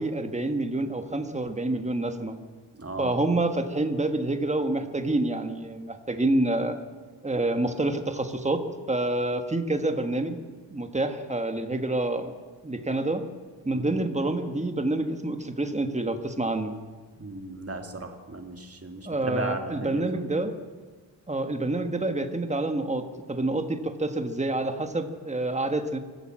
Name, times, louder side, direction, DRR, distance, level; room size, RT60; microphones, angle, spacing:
voice 1, 0.0-2.4 3.0-6.7 7.2-8.6 8.9-10.4 10.7-12.3 12.6-13.2 13.6-16.8 19.0-20.5 21.3-26.0, right 2 dB, 15° right, 6 dB, 1.4 m, -27 dB
voice 2, 2.7-3.1 13.7-14.0 17.2-20.2, right 2 dB, 30° right, 4 dB, 2.2 m, -36 dB
24.5 x 15.0 x 7.6 m, 1.5 s
wide cardioid pair, 165°, 45 cm